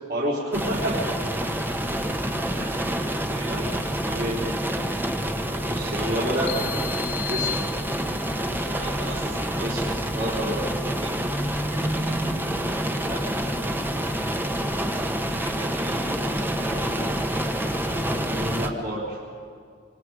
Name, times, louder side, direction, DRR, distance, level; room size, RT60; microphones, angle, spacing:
voice 1, 0.1-0.9 2.6-2.9 3.5-3.7 4.2-4.4 5.5-6.5 7.3-7.6 9.6-9.8 10.2-10.7 13.0-13.2 17.9-19.2, right 1 dB, 50° right, -8 dB, 4.0 m, -30 dB
sound 1, 0.5-18.7, right 1 dB, 10° right, 1.2 m, -27 dB
voice 2, 0.8-1.1 3.3-4.6 8.6-9.8 11.0-11.2 11.6-12.4 15.1-17.1, right 2 dB, 70° right, -3 dB, 7.1 m, -40 dB
sound 2, 6.5-8.4, left 10 dB, 75° left, 1.0 m, -33 dB
26.0 x 25.5 x 4.9 m, 2.2 s
head